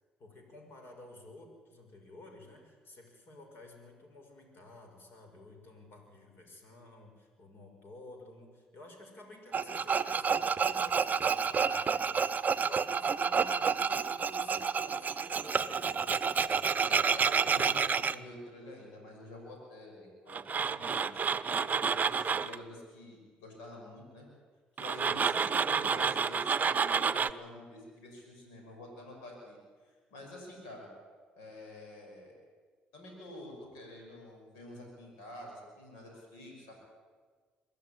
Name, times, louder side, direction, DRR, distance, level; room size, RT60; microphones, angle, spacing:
voice 1, 0.2-15.9 25.0-25.4, left 2 dB, 55° left, 3 dB, 6.3 m, -53 dB
Tools, 9.5-18.1 20.3-22.6 24.8-27.3, right 6 dB, 35° right, 0.8 m, -29 dB
voice 2, 16.9-24.3 24.8-29.6 29.8-30.9 31.4-32.3 32.9-36.7, left 1 dB, 80° left, 1 dB, 5.9 m, -49 dB
23.5 x 13.5 x 9.8 m, 1.5 s
hypercardioid pair, 55°, 5 cm